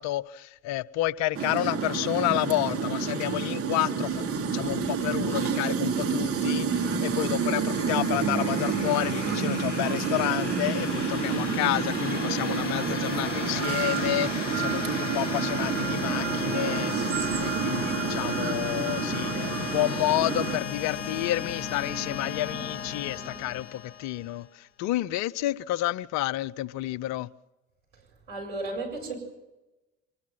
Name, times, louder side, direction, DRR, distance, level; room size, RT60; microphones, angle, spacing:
voice 1, 0.0-4.2 4.5-27.3, left 16 dB, 50° left, 0.6 m, -30 dB
sound 1, 1.3-20.6, right 5 dB, 40° right, 3.0 m, -29 dB
sound 2, 4.1-23.6, left 3 dB, 15° left, 3.5 m, -45 dB
sound 3, 6.8-24.5, left 6 dB, 85° left, 0.7 m, -37 dB
voice 2, 28.3-29.2, right 2 dB, 75° right, 7.7 m, -34 dB
24.5 x 21.0 x 6.0 m
figure-of-eight pair, 55°, 35 cm